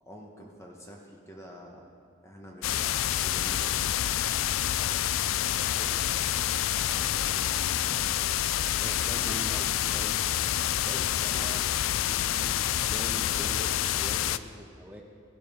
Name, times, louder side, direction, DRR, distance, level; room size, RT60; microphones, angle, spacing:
voice 1, 0.0-1.8 2.2-3.8, equal, 15° left, -1 dB, 1.3 m, -47 dB
sound 1, 2.6-14.4, left 11 dB, 80° left, 0.4 m, -28 dB
voice 2, 5.7-7.9 8.7-10.2 10.7-15.0, equal, 10° right, 0 dB, 1.3 m, -44 dB
16.0 x 12.0 x 3.6 m, 2.3 s
head